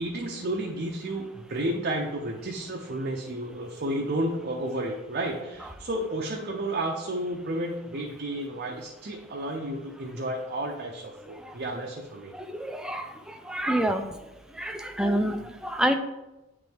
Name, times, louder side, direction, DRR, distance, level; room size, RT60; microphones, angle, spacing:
voice 1, 0.0-12.3, right 1 dB, 45° right, -1 dB, 0.6 m, -32 dB
voice 2, 12.3-14.1 14.6-16.0, right 1 dB, 5° right, 6 dB, 0.4 m, -28 dB
9.2 x 3.3 x 3.5 m, 1.0 s
head